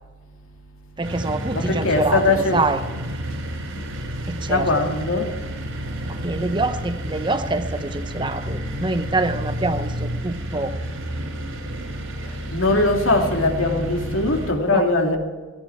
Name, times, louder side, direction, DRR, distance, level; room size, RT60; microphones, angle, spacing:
voice 1, 1.0-2.8 4.3-4.7 6.1-10.7 14.7-14.9, right 2 dB, 25° right, 10 dB, 0.7 m, -25 dB
sound 1, 1.0-14.5, equal, 85° right, 4.8 m, -30 dB
voice 2, 1.5-2.6 4.5-5.3 12.2-15.2, left 2 dB, 75° left, 3 dB, 2.6 m, -21 dB
17.5 x 16.5 x 4.8 m, 1.4 s
head